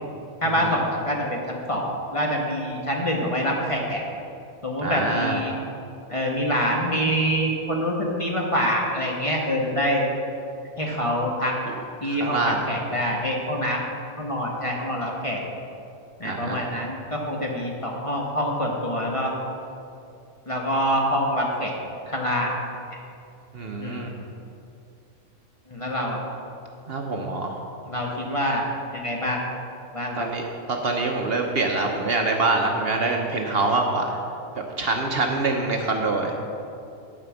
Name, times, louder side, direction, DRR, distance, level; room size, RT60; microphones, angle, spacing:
voice 1, 0.4-4.0 4.6-5.5 6.1-10.0 10.8-11.5 12.0-13.8 14.2-15.4 16.2-19.3 20.5-21.7 22.1-22.5 23.8-24.1 25.7-26.2 27.9-28.7 28.9-29.4 29.9-30.3, equal, 25° left, -2 dB, 1.2 m, -25 dB
voice 2, 4.8-5.4 11.7-11.8 12.0-12.6 16.2-16.6 23.5-24.1 26.9-27.5 30.2-34.2 34.8-36.3, right 3 dB, 55° right, 2 dB, 1.0 m, -25 dB
11.0 x 5.0 x 7.0 m, 2.7 s
omnidirectional pair, 1.4 m